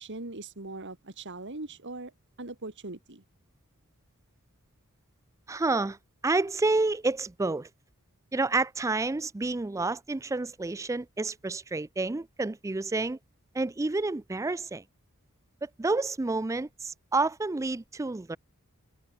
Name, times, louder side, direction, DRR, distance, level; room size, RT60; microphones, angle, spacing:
voice 1, 0.0-2.1 2.4-3.2, right 2 dB, 55° right, 2.3 m, -40 dB
voice 2, 5.5-6.0 6.2-7.7 8.3-13.2 13.5-14.8 15.6-18.4, right 3 dB, 15° right, 0.4 m, -29 dB
head